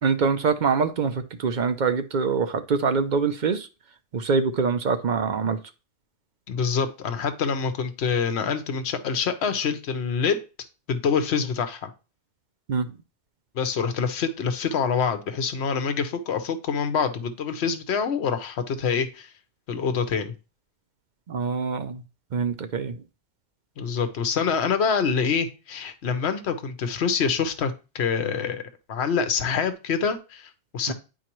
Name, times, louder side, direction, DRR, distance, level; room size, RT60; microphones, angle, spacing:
voice 1, 0.0-3.7 4.1-5.6 12.7-12.9 21.3-22.0 22.3-23.0 30.9-31.0, right 5 dB, 50° right, 10 dB, 0.6 m, -24 dB
voice 2, 6.5-10.4 10.9-11.9 13.5-19.3 19.7-20.3 23.8-28.6 28.9-30.9, left 6 dB, 65° left, 9 dB, 1.1 m, -26 dB
9.8 x 4.5 x 3.0 m, 0.31 s
omnidirectional pair, 1.2 m